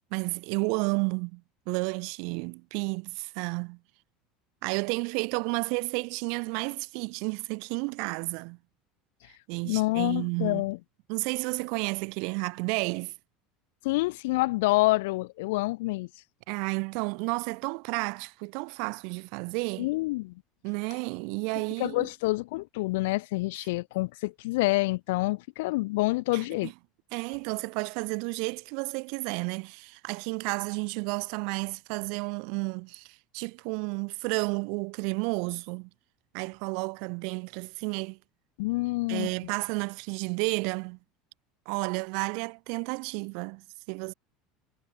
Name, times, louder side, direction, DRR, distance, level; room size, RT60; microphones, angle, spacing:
voice 1, 0.1-1.4 1.7-3.8 4.6-8.6 9.5-10.6 11.1-13.1 16.5-19.9 20.6-22.1 26.3-26.7 27.1-35.9 36.3-38.2 39.1-41.0 41.6-44.1, right 37 dB, 55° right, 1.7 m, -32 dB
voice 2, 9.6-10.8 13.8-16.1 19.8-20.3 21.8-26.7 38.6-39.3, left 21 dB, 75° left, 4.8 m, -27 dB
cardioid pair, 180°, 0 cm